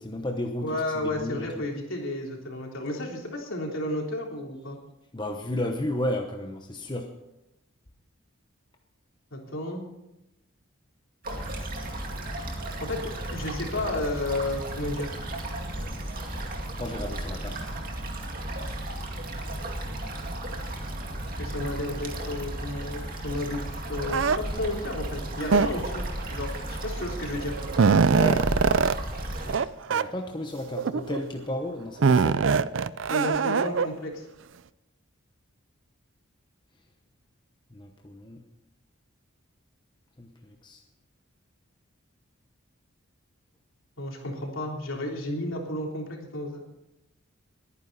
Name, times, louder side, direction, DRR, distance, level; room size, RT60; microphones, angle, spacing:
voice 1, 0.0-0.8 1.0-1.6 5.1-7.1 16.8-17.7 28.1-28.6 29.9-32.5 37.7-38.4 40.2-40.8, left 1 dB, 20° left, 3 dB, 1.0 m, -33 dB
voice 2, 0.6-4.8 9.3-9.8 12.8-15.1 21.4-27.5 33.1-34.2 44.0-46.6, left 1 dB, 70° left, 0 dB, 3.5 m, -32 dB
sound 1, 11.2-29.6, right 1 dB, 40° right, 2.2 m, -34 dB
sound 2, 24.1-24.4 25.5-26.0 27.0-27.1 27.4-29.0 29.5-29.6 29.9-30.0 30.7-31.2 32.0-33.9, right 5 dB, 60° right, 0.4 m, -22 dB
21.0 x 9.9 x 4.1 m, 0.92 s
head